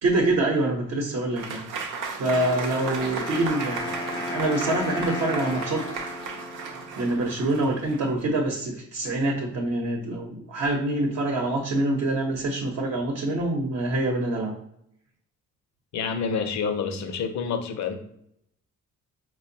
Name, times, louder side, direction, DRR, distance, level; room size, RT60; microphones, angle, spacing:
voice 1, 0.0-1.9 2.2-6.2 7.0-14.5, right 2 dB, 55° right, 0 dB, 0.8 m, -26 dB
Applause / Crowd, 1.4-8.2, right 5 dB, 90° right, 0.7 m, -35 dB
Wind instrument woodwind instrument, 2.3-7.3, left 2 dB, 15° left, 0.5 m, -35 dB
voice 2, 15.9-18.0, left 6 dB, 65° left, 6 dB, 0.7 m, -28 dB
4.3 x 2.2 x 2.7 m, 0.75 s
cardioid pair, 90°, 30 cm